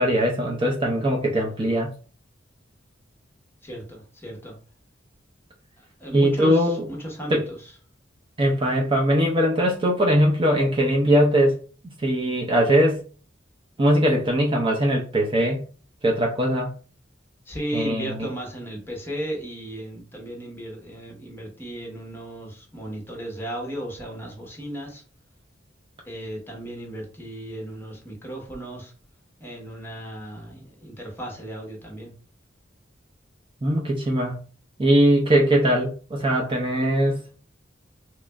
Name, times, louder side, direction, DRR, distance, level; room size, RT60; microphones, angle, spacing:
voice 1, 0.0-1.9 6.1-6.9 7.3-7.4 8.4-11.6 12.0-13.0 13.8-15.6 16.0-16.7 17.7-18.3 33.6-34.3 34.8-37.2, equal, 25° right, 0 dB, 0.5 m, -21 dB
voice 2, 3.6-4.5 5.8-7.7 17.5-25.0 26.0-28.9 29.4-32.1, right 1 dB, 10° left, 0 dB, 1.0 m, -35 dB
3.0 x 2.4 x 3.3 m, 0.38 s
head